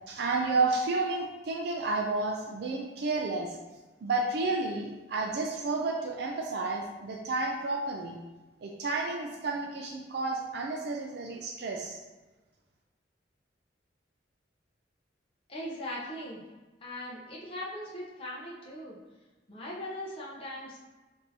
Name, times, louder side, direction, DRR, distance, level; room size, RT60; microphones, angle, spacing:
voice 1, 0.1-3.6 4.0-8.2 8.6-12.0, right 3 dB, 60° right, 1 dB, 0.4 m, -31 dB
voice 2, 15.5-16.4 16.8-19.0 19.5-20.8, left 1 dB, 30° left, -5 dB, 0.7 m, -39 dB
6.0 x 2.7 x 2.7 m, 1.2 s
head